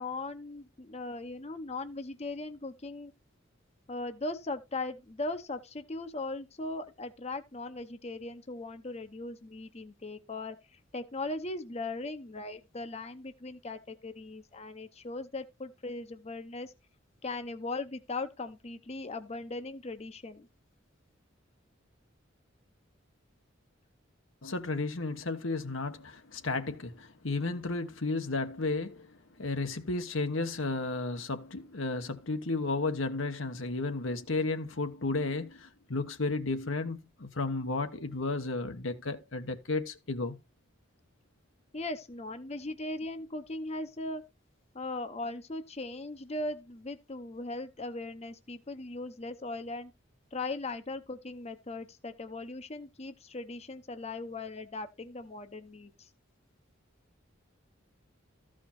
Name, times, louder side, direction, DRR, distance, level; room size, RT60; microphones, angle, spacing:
voice 1, 0.0-3.1 3.9-10.6 10.9-16.7 17.2-20.5 41.7-44.2 44.7-49.9 50.3-56.1, left 2 dB, 35° left, 0.9 m, -39 dB
voice 2, 24.4-40.4, left 3 dB, 80° left, 1.3 m, -33 dB
14.0 x 5.0 x 4.3 m
head